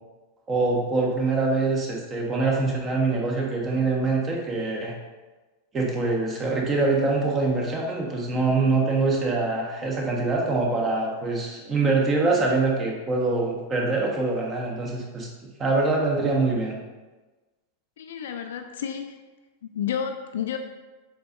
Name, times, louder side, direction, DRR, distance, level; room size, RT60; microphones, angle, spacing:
voice 1, 0.5-4.9 5.7-15.3 15.6-16.8, right 3 dB, 25° right, -1 dB, 1.3 m, -24 dB
voice 2, 18.0-19.2 19.6-20.6, left 8 dB, 60° left, 6 dB, 0.4 m, -31 dB
7.7 x 5.1 x 2.6 m, 1.2 s
figure-of-eight pair, 90°, 0 cm